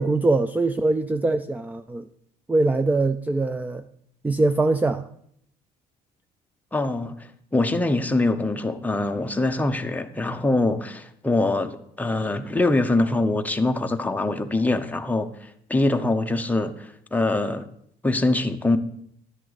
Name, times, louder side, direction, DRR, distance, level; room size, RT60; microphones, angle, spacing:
voice 1, 0.0-2.0 2.5-3.8 4.2-5.0, right 2 dB, 10° right, 0.4 m, -22 dB
voice 2, 6.7-17.7 18.0-18.8, left 2 dB, 10° left, 0.9 m, -24 dB
12.5 x 9.8 x 4.1 m
cardioid pair, 110°, 17 cm